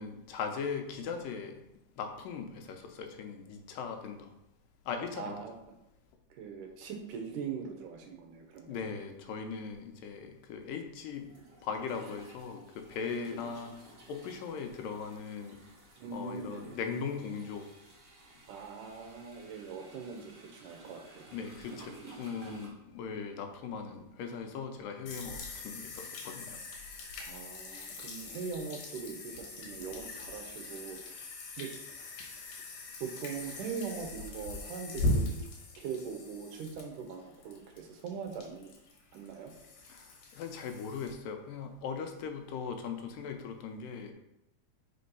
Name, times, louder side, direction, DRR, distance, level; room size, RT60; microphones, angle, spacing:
voice 1, 0.0-1.6 2.0-4.3 4.9-5.4 8.7-11.3 11.6-13.7 14.1-15.6 16.1-17.7 21.3-26.6 39.9-44.1, left 6 dB, 90° left, 5 dB, 2.5 m, -39 dB
voice 2, 5.2-5.5 6.3-8.9 13.3-13.6 16.0-16.8 18.5-21.3 27.2-31.2 31.6-31.7 33.0-35.3 35.8-38.7 39.1-39.5, right 6 dB, 75° right, 3 dB, 2.4 m, -41 dB
sound 1, 9.7-9.8 11.1-22.7, right 3 dB, 40° right, 1.7 m, -55 dB
sound 2, 25.1-41.1, left 2 dB, 70° left, 2.6 m, -40 dB
5.4 x 4.3 x 5.4 m, 0.87 s
omnidirectional pair, 3.8 m